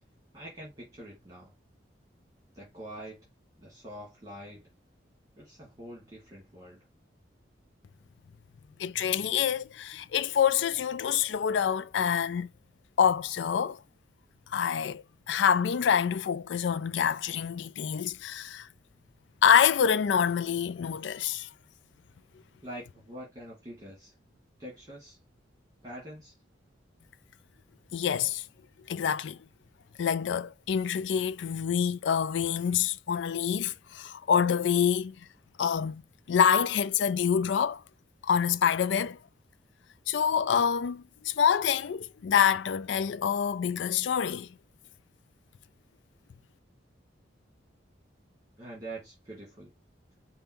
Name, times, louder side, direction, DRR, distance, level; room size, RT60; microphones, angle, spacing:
voice 1, 0.3-1.5 2.5-3.3 3.6-4.7 5.4-6.9 22.6-24.1 24.6-25.2 25.8-26.4 48.6-49.7, right 1 dB, 20° right, 1.8 m, -45 dB
voice 2, 8.8-12.5 13.0-13.8 14.5-18.7 19.4-21.5 27.9-28.4 28.9-29.4 30.0-35.1 35.6-36.0 36.3-37.8 38.2-39.2 40.1-44.5, left 7 dB, 75° left, 0.4 m, -26 dB
5.3 x 2.3 x 4.3 m
head